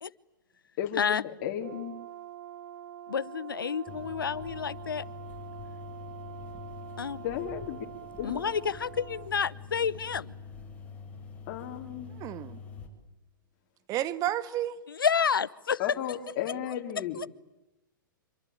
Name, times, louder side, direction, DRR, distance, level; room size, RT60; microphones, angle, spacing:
voice 1, 0.8-2.0 7.2-7.9 8.2-8.4 11.5-12.1 15.8-17.3, left 10 dB, 45° left, 4.0 m, -34 dB
Brass instrument, 1.6-9.3, right 11 dB, 65° right, 1.4 m, -45 dB
voice 2, 3.1-5.1 7.0-7.2 8.2-10.4 14.9-16.0, left 6 dB, 85° left, 1.0 m, -29 dB
sound 1, 3.9-12.9, left 5 dB, 10° left, 7.7 m, -45 dB
voice 3, 12.2-12.6 13.9-14.7, right 13 dB, 30° right, 1.7 m, -31 dB
27.0 x 24.5 x 8.8 m
hypercardioid pair, 120°, 11 cm